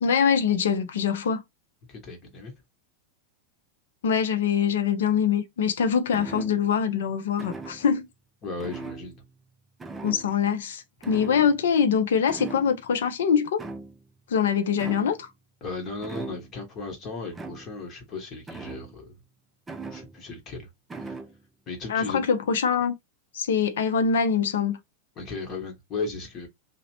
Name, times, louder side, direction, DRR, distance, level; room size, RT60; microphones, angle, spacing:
voice 1, 0.0-1.4 4.0-8.1 10.0-13.7 14.3-15.3 21.9-23.0 23.3-24.8, left 7 dB, 60° left, 0.5 m, -24 dB
voice 2, 1.9-2.5 8.4-9.2 15.6-19.2 19.9-20.7 21.0-21.1 21.7-22.2 25.2-26.5, left 3 dB, 30° left, 1.0 m, -36 dB
sound 1, 6.1-6.8 7.4-8.0 8.6-9.5 9.8-10.5 11.0-11.9 12.3-13.0 13.6-14.2 14.8-15.3 16.0-16.7 17.3-17.9 18.5-19.1 19.7-20.4 20.9-21.4, right 3 dB, 10° right, 0.4 m, -40 dB
2.8 x 2.1 x 2.9 m
figure-of-eight pair, 90°, 0 cm